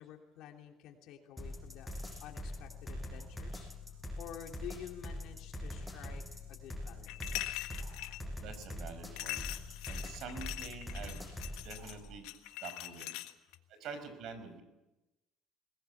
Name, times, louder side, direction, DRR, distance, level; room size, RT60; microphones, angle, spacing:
voice 1, 0.0-1.9 2.2-6.2 6.5-7.7, left 9 dB, 70° left, 3 dB, 3.0 m, -50 dB
sound 1, 1.4-12.0, left 1 dB, ahead, 7.2 m, -43 dB
sound 2, 7.1-8.2 9.2-13.5, left 17 dB, 85° left, 1.5 m, -42 dB
voice 2, 7.8-9.4 9.8-11.3 11.6-12.3 12.6-13.1 13.7-14.6, right 5 dB, 65° right, 10 dB, 5.2 m, -47 dB
22.0 x 20.0 x 8.5 m, 0.98 s
cardioid pair, 115°, 0 cm